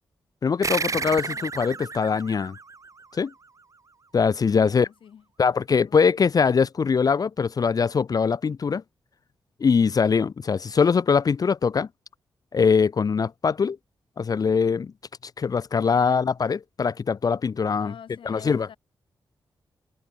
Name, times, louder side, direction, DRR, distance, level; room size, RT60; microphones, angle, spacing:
voice 1, 0.4-2.6 3.2-3.3 4.1-4.9 5.4-8.8 9.6-11.9 12.5-13.8 14.2-14.9 15.4-17.9 18.3-18.7, left 5 dB, 50° left, 0.6 m, -22 dB
sound 1, 0.6-3.6, right 4 dB, 40° right, 3.4 m, -32 dB
voice 2, 1.2-1.8 4.5-5.2 5.8-6.0 15.8-16.2 17.8-18.8, left 8 dB, 80° left, 5.9 m, -47 dB
cardioid pair, 80°, 9 cm